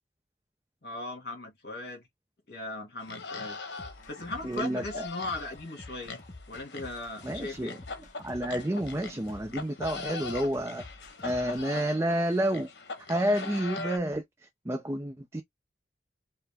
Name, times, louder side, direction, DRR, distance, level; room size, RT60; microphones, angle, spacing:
voice 1, 0.8-2.0 2.5-3.6 4.1-6.2 6.5-7.8, left 2 dB, 60° left, 2.1 m, -38 dB
sound 1, 3.0-14.0, left 4 dB, 75° left, 1.0 m, -41 dB
sound 2, 3.8-11.6, left 2 dB, 45° left, 0.9 m, -49 dB
voice 2, 4.4-5.1 7.2-7.8 8.2-10.8 11.2-12.7 13.1-14.2 14.7-15.4, right 1 dB, 15° right, 0.5 m, -29 dB
4.7 x 2.2 x 3.4 m
head